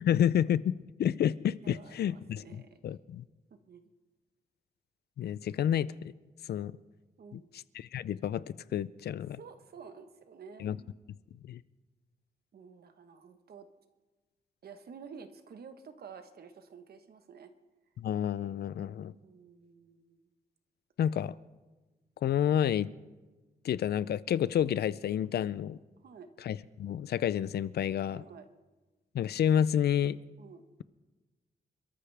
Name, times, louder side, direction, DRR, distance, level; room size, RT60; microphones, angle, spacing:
voice 1, 0.0-3.2 5.2-5.9 6.5-6.7 7.3-9.4 10.6-10.8 11.5-11.6 18.0-19.1 21.0-21.4 22.2-22.9 23.6-25.8 26.5-28.2 29.1-30.2, left 9 dB, 85° left, 19 dB, 0.4 m, -30 dB
voice 2, 1.6-3.0 3.5-3.8 7.2-7.5 9.4-11.0 12.5-13.7 14.6-17.5 19.2-20.2 26.0-26.3 28.1-28.5 30.4-30.6, right 6 dB, 75° right, 8 dB, 1.2 m, -51 dB
27.5 x 13.5 x 3.4 m, 1.2 s
wide cardioid pair, 110°, 16 cm